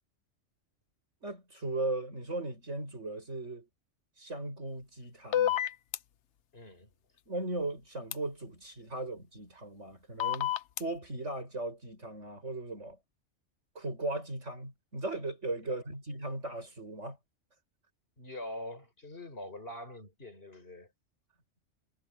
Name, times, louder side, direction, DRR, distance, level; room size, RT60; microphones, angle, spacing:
voice 1, 1.2-3.7 4.2-5.6 7.3-10.5 10.8-13.0 13.8-17.2, right 2 dB, 80° right, 8.5 m, -37 dB
sound 1, 5.3-6.0 8.1-8.2 10.2-10.8, left 11 dB, 75° left, 1.0 m, -28 dB
voice 2, 6.5-6.9 15.7-15.8 18.2-20.9, left 1 dB, 55° left, 5.3 m, -44 dB
omnidirectional pair, 1.2 m